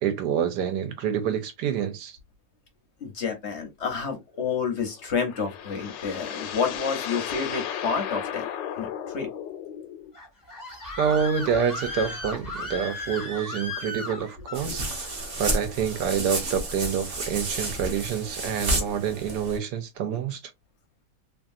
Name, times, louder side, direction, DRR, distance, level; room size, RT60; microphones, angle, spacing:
voice 1, 0.0-2.2 11.0-14.9 15.4-20.4, right 7 dB, 75° right, 1.1 m, -27 dB
voice 2, 3.0-8.5 8.8-9.3 14.6-14.8, left 5 dB, 50° left, 0.8 m, -29 dB
sound 1, 4.9-10.1, left 9 dB, 80° left, 1.3 m, -35 dB
Screaming, 10.1-14.7, left 2 dB, 25° left, 0.4 m, -35 dB
sound 2, 14.5-19.6, right 1 dB, 50° right, 0.5 m, -31 dB
2.9 x 2.6 x 2.5 m
omnidirectional pair, 2.0 m